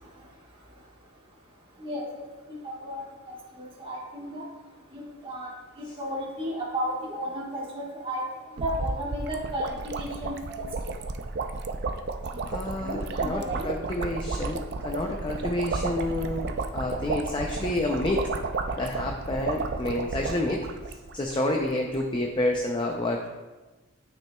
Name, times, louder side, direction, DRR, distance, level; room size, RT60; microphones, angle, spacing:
voice 1, 2.5-4.4 4.9-5.5 5.8-8.2 8.6-10.6 11.0-11.1 12.3-12.4 12.8-13.7 15.8-15.9, equal, 25° right, -5 dB, 1.3 m, -34 dB
sound 1, 8.6-21.3 21.6-21.7 21.9-22.2, right 3 dB, 50° right, 0.4 m, -32 dB
voice 2, 12.5-18.2 18.8-20.6 20.9-23.2, left 1 dB, 25° left, 1 dB, 0.4 m, -29 dB
10.0 x 6.0 x 2.3 m, 1.2 s
head